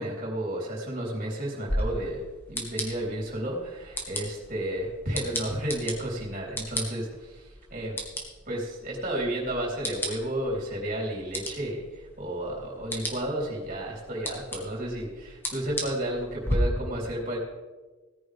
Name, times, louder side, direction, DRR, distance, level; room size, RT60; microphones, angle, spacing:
voice 1, 0.0-8.0 8.5-17.4, right 1 dB, 40° right, -3 dB, 3.7 m, -32 dB
sound 1, 1.7-16.6, equal, 10° left, 1.7 m, -37 dB
17.0 x 9.9 x 3.5 m, 1.3 s
head